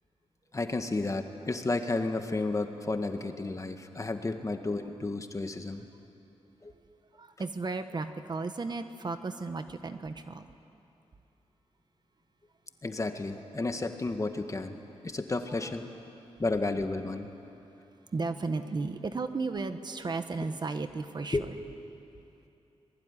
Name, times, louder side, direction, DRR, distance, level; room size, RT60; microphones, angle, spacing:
voice 1, 0.5-5.9 6.6-6.7 12.8-14.8 15.0-15.9 16.4-17.3 21.3-21.5, left 3 dB, 30° left, 6 dB, 1.8 m, -32 dB
voice 2, 7.1-10.4 12.9-13.0 18.1-21.6, right 3 dB, 40° right, 8 dB, 1.3 m, -34 dB
25.0 x 21.0 x 10.0 m, 2.7 s
wide cardioid pair, 90°, 11 cm